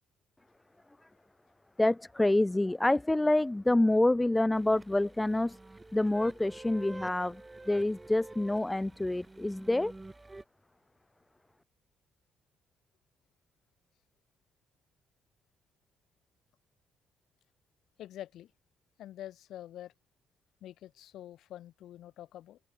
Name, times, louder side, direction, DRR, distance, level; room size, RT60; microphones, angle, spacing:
voice 1, 1.8-5.6 5.9-7.4 7.7-9.9, left 1 dB, 10° left, 0.9 m, -27 dB
sound 1, 4.5-10.4, right 2 dB, 15° right, 6.0 m, -49 dB
voice 2, 18.0-18.5 19.0-19.9 20.6-22.6, left 12 dB, 80° left, 3.2 m, -46 dB
open air
cardioid pair, 90°, 0 cm